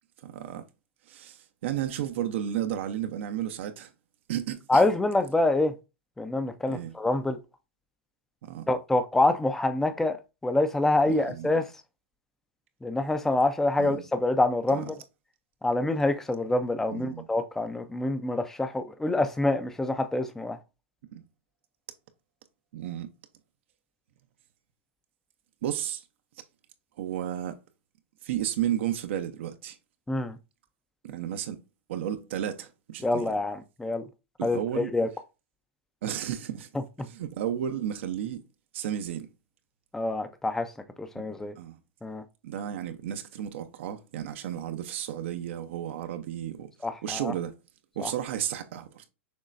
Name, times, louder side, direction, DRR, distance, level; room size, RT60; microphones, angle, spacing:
voice 1, 0.2-0.6 1.1-3.9 4.3-4.9 6.7-6.9 8.4-8.7 11.1-11.5 13.8-14.0 14.7-14.8 16.9-17.3 21.1-21.2 22.7-23.1 25.6-26.0 27.0-27.6 28.2-29.8 31.0-31.6 31.9-33.3 34.4-34.9 36.0-36.7 37.0-38.4 38.7-39.3 41.1-41.3 41.6-41.8 42.4-46.7 47.0-47.5 48.0-49.0, right 10 dB, 70° right, 0.7 m, -33 dB
voice 2, 4.7-5.7 6.2-7.4 8.7-10.2 10.4-11.7 12.8-15.0 15.6-20.6 30.1-30.4 33.0-34.0 34.4-35.1 39.9-40.7 41.0-41.5 42.0-42.2 46.8-47.3 48.0-48.1, left 2 dB, 5° left, 0.5 m, -26 dB
6.4 x 3.0 x 2.5 m
hypercardioid pair, 120°, 7 cm